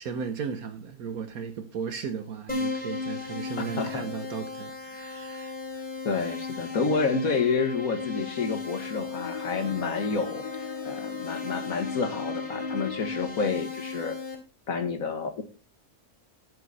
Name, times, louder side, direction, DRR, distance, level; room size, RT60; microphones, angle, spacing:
voice 1, 0.0-5.9 6.1-6.3, right 6 dB, 75° right, 1.5 m, -36 dB
Keyboard (musical), 2.5-14.3, left 3 dB, 5° left, 3.3 m, -35 dB
voice 2, 6.1-14.2 14.7-15.4, left 4 dB, 65° left, 2.0 m, -29 dB
Bowed string instrument, 9.1-13.2, left 8 dB, 30° left, 0.8 m, -40 dB
11.0 x 8.6 x 4.1 m
omnidirectional pair, 1.6 m